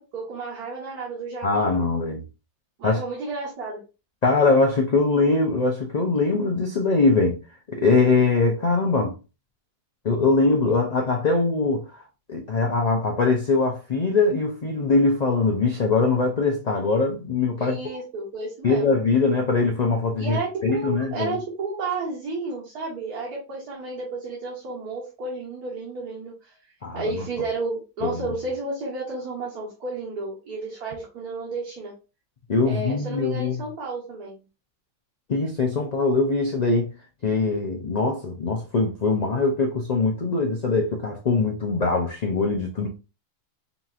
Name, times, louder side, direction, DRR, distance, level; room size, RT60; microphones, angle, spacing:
voice 1, 0.0-1.7 2.8-3.8 17.6-18.9 20.2-26.6 26.9-31.9 32.7-34.4, right 3 dB, 80° right, 1.8 m, -32 dB
voice 2, 1.4-2.2 2.8-3.0 4.2-7.4 7.7-9.1 10.0-11.8 12.3-17.8 18.6-21.3 26.8-27.0 28.0-28.2 32.5-33.6 35.3-36.9 37.2-42.9, left 3 dB, 85° left, 0.3 m, -22 dB
5.3 x 2.9 x 2.4 m
omnidirectional pair, 1.6 m